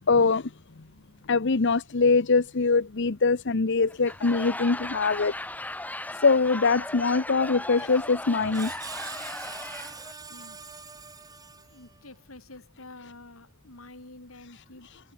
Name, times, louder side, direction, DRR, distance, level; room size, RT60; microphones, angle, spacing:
voice 1, 0.1-0.5 1.3-5.3 6.2-8.7, left 4 dB, 60° left, 0.9 m, -23 dB
Laughter / Crowd, 3.9-10.1, left 1 dB, 10° left, 1.5 m, -37 dB
Screech, 7.8-12.1, right 4 dB, 20° right, 3.4 m, -43 dB
voice 2, 10.3-10.8 11.7-14.9, left 2 dB, 90° left, 4.5 m, -48 dB
head